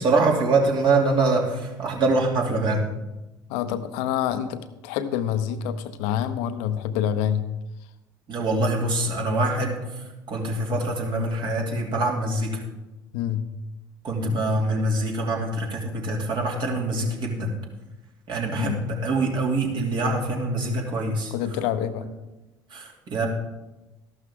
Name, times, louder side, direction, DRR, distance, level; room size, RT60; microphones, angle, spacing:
voice 1, 0.0-2.8 8.3-9.8 10.3-12.6 14.0-17.5 18.3-21.3 22.7-23.3, right 2 dB, 45° right, 0 dB, 2.8 m, -24 dB
voice 2, 3.5-7.5 13.1-13.5 18.5-18.9 21.3-22.1, left 10 dB, 65° left, 11 dB, 0.9 m, -27 dB
13.5 x 12.0 x 3.7 m, 1.0 s
figure-of-eight pair, 60°, 11 cm